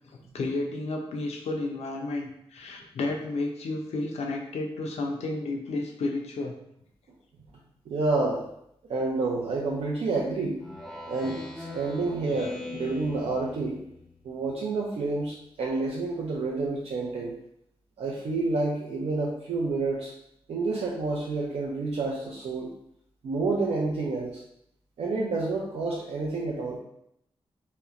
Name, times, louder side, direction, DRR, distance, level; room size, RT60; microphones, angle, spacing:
voice 1, 0.3-6.5 11.2-11.3 12.3-12.4, left 2 dB, 85° left, 1 dB, 0.5 m, -32 dB
voice 2, 7.9-8.4 8.9-10.6 11.1-13.8 14.2-17.3 18.0-20.1 20.5-22.7 23.2-24.4 25.0-26.8, right 3 dB, 75° right, -4 dB, 0.4 m, -29 dB
Speech synthesizer, 10.6-14.1, left 2 dB, 5° left, 0.5 m, -40 dB
2.8 x 2.0 x 2.4 m, 0.75 s
cardioid pair, 70°, 11 cm